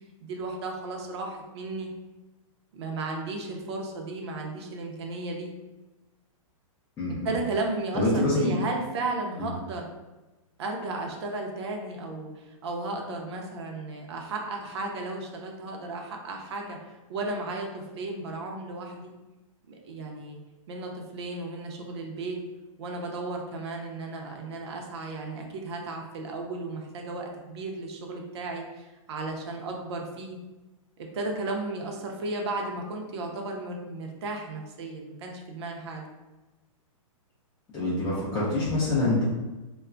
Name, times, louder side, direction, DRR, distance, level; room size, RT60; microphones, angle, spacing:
voice 1, 0.2-1.9 2.7-5.5 7.1-9.9 10.6-16.8 17.1-19.1 19.7-20.4 20.7-22.4 22.8-30.4 31.0-36.1, right 2 dB, 50° right, 1 dB, 0.5 m, -34 dB
voice 2, 7.0-7.3 7.9-8.5 37.7-39.2, left 2 dB, 10° left, -10 dB, 0.4 m, -25 dB
2.2 x 2.0 x 3.6 m, 1.1 s
hypercardioid pair, 165°, 18 cm